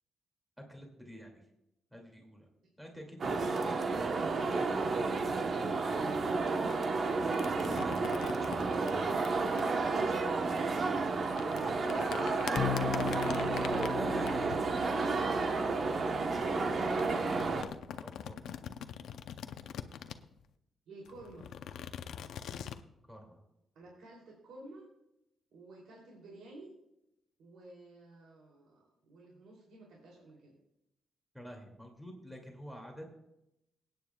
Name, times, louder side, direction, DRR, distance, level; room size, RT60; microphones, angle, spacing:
voice 1, 0.7-1.4 1.9-2.5 2.8-6.3 7.4-8.0 8.4-9.1 11.9-12.4 13.9-16.8 17.1-18.6 22.4-22.7 23.1-23.4 31.3-33.1, equal, 5° right, 1 dB, 2.4 m, -49 dB
sound 1, 3.2-17.6, right 3 dB, 50° right, 1.0 m, -31 dB
sound 2, 7.3-9.6 11.0-15.9 16.6-20.4 21.1-22.8, left 9 dB, 85° left, 0.6 m, -43 dB
voice 2, 10.3-10.8 13.2-13.5 20.9-21.5 23.7-24.8 25.5-26.7 27.4-30.5, right 2 dB, 90° right, -2 dB, 3.0 m, -52 dB
sound 3, 12.6-17.3, left 8 dB, 55° left, 1.0 m, -39 dB
23.0 x 9.3 x 2.3 m, 0.86 s
cardioid pair, 105°, 0 cm